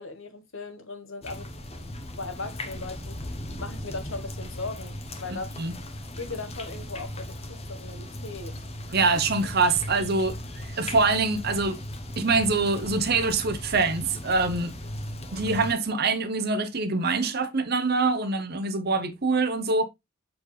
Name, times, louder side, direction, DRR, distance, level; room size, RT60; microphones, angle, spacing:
voice 1, 0.0-1.5 2.1-3.2 3.6-4.9 5.2-5.5 6.2-8.6, left 3 dB, 60° left, 1.2 m, -38 dB
sound 1, 1.2-15.7, left 1 dB, 30° left, 0.9 m, -37 dB
voice 2, 5.3-5.7 8.9-10.4 10.6-11.8 12.2-14.8 15.3-19.8, right 3 dB, 45° right, 0.7 m, -24 dB
6.9 x 4.4 x 3.2 m
head